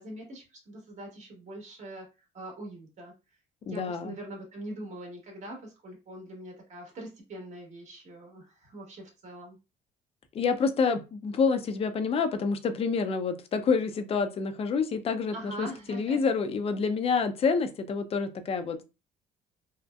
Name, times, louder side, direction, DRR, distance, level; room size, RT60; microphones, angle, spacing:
voice 1, 0.0-2.1 2.3-3.1 3.7-9.6 15.3-16.2, right 1 dB, 45° right, 0 dB, 1.1 m, -43 dB
voice 2, 3.6-4.1 10.3-18.8, left 5 dB, 35° left, 9 dB, 0.4 m, -28 dB
2.7 x 2.0 x 2.2 m, 0.28 s
cardioid pair, 110°, 17 cm